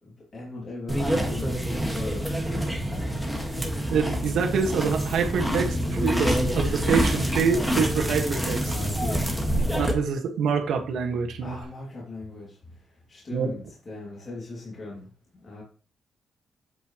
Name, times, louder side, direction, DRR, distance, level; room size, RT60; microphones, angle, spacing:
voice 1, 0.0-2.7 8.6-9.4 11.4-15.6, left 2 dB, 30° left, 2.7 m, -39 dB
sound 1, 0.9-9.9, equal, ahead, 1.7 m, -27 dB
voice 2, 3.9-8.7 9.7-11.6 13.3-13.5, right 6 dB, 85° right, 1.6 m, -26 dB
Bass guitar, 5.4-10.2 10.4-11.6, left 4 dB, 70° left, 4.5 m, -39 dB
8.5 x 8.3 x 3.1 m
wide cardioid pair, 170°, 0 cm